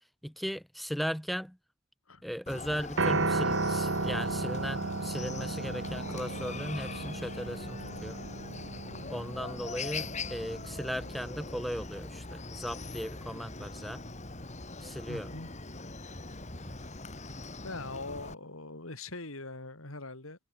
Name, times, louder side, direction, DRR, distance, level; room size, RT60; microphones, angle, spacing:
voice 1, 0.2-1.6 2.2-8.2 9.1-14.0 14.8-15.3 16.6-16.7, equal, ahead, 0.5 m, -37 dB
Chicken rooster, 2.5-18.3, left 3 dB, 35° left, 2.7 m, -42 dB
Piano, 3.0-11.2, right 3 dB, 60° right, 1.9 m, -34 dB
voice 2, 15.1-15.5 17.6-20.4, left 2 dB, 80° left, 3.9 m, -42 dB
head